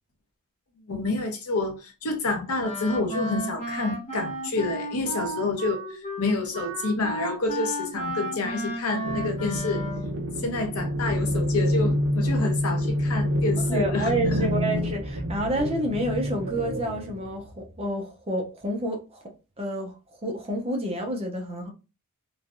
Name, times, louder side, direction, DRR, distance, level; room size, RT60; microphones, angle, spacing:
voice 1, 0.9-9.8 10.4-14.1 14.4-14.5, left 3 dB, 75° left, 0.8 m, -28 dB
Wind instrument woodwind instrument, 2.6-10.1, equal, 30° left, 0.9 m, -33 dB
sound 1, 9.0-17.8, equal, 65° right, 0.9 m, -27 dB
voice 2, 13.7-19.2 19.6-19.9 20.2-21.7, right 1 dB, 25° right, 0.6 m, -29 dB
3.1 x 2.3 x 2.5 m
head